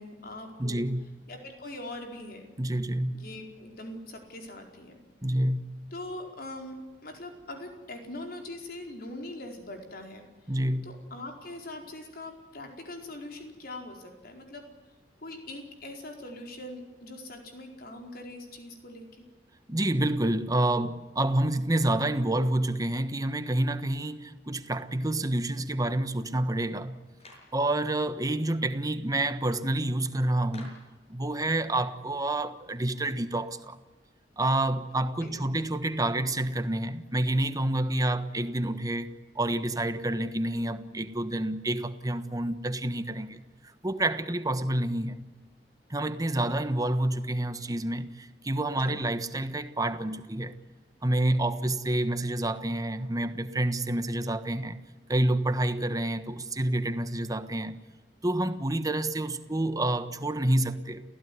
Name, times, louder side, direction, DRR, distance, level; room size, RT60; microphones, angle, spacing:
voice 1, 0.0-0.9 1.3-2.5 3.1-5.0 5.9-6.8 7.0-10.2 10.8-14.7 15.2-19.3 34.9-35.6 48.7-49.1, left 1 dB, 55° left, 4.6 m, -42 dB
voice 2, 0.6-1.1 2.6-3.1 5.2-5.7 10.5-10.9 19.7-27.0 27.5-30.7 31.1-33.8 34.4-39.1 39.3-43.4 43.8-45.3 45.9-50.5 51.0-54.8 55.1-57.8 58.2-61.0, right 1 dB, 20° right, 1.3 m, -28 dB
Clapping, 27.2-27.6 30.5-31.0, left 1 dB, 35° left, 6.5 m, -49 dB
29.5 x 16.0 x 9.6 m
head